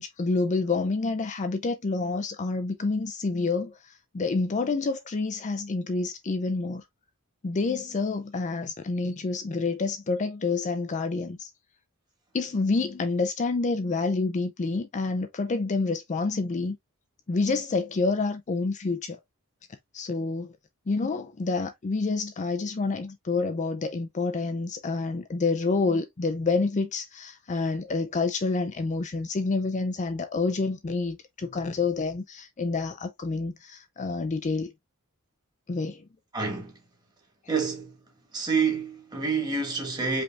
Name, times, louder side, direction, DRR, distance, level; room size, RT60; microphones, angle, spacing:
voice 1, 0.0-3.7 4.1-6.8 7.4-11.5 12.3-16.8 17.3-19.2 19.9-20.5 20.9-34.7 35.7-36.0, left 3 dB, 35° left, 0.4 m, -28 dB
voice 2, 36.3-36.7 37.5-37.9 38.3-40.2, right 5 dB, 20° right, 1.7 m, -27 dB
5.1 x 3.4 x 2.3 m
head